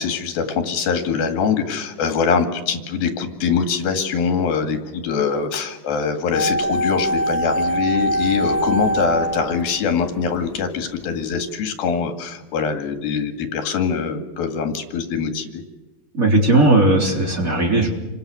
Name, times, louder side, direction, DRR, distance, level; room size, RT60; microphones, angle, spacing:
voice 1, 0.0-15.6, left 6 dB, 85° left, 6 dB, 4.1 m, -23 dB
sound 1, 6.3-10.4 10.7-10.8, right 1 dB, 65° left, 0.9 m, -23 dB
voice 2, 16.1-18.0, right 2 dB, 25° right, 1 dB, 3.7 m, -17 dB
28.5 x 25.0 x 7.0 m, 1.1 s
omnidirectional pair, 4.2 m